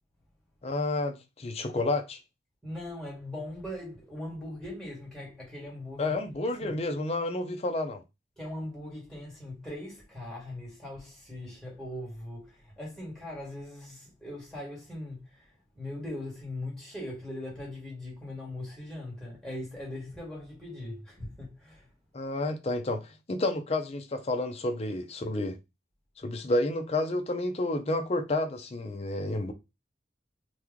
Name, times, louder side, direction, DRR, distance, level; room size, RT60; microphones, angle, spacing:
voice 1, 0.6-2.2 6.0-8.0 22.1-25.6 26.2-29.5, left 2 dB, 35° left, 0.5 m, -30 dB
voice 2, 2.6-6.2 6.5-6.7 8.4-21.9, left 1 dB, ahead, 1.5 m, -40 dB
3.0 x 2.2 x 3.6 m
head